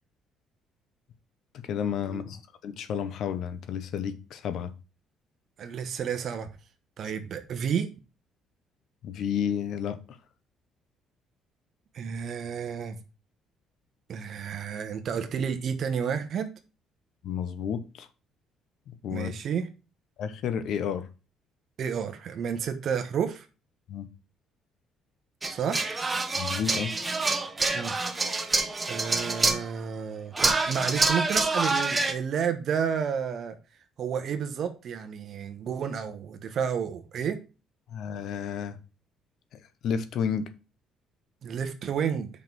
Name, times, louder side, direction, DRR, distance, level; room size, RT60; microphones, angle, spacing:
voice 1, 1.6-4.7 9.0-10.0 17.2-18.1 18.9-19.3 20.2-21.1 23.9-24.1 26.4-26.9 37.9-38.8 39.5-40.5, left 8 dB, 65° left, 0.9 m, -31 dB
voice 2, 5.6-6.5 7.0-7.9 11.9-13.0 14.1-16.5 19.1-19.7 21.8-23.5 25.5-25.8 27.7-27.9 28.9-33.6 34.0-37.4 41.4-42.3, right 7 dB, 55° right, 1.1 m, -31 dB
sound 1, 25.4-29.7 30.3-32.1, right 3 dB, 20° right, 1.2 m, -27 dB
5.5 x 5.2 x 6.1 m
cardioid pair, 105°, 0 cm